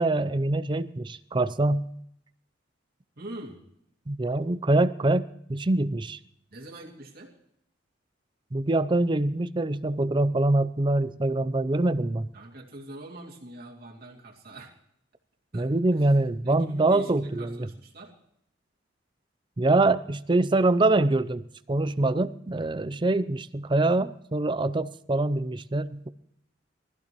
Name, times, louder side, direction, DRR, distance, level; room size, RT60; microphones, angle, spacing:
voice 1, 0.0-1.9 4.1-6.2 8.5-12.3 15.5-17.7 19.6-26.1, right 2 dB, 25° right, 14 dB, 0.5 m, -24 dB
voice 2, 3.2-3.6 6.5-7.4 12.3-14.7 15.5-16.1 16.4-18.2, right 1 dB, 55° right, 0 dB, 2.5 m, -44 dB
23.0 x 15.5 x 3.0 m, 0.73 s
head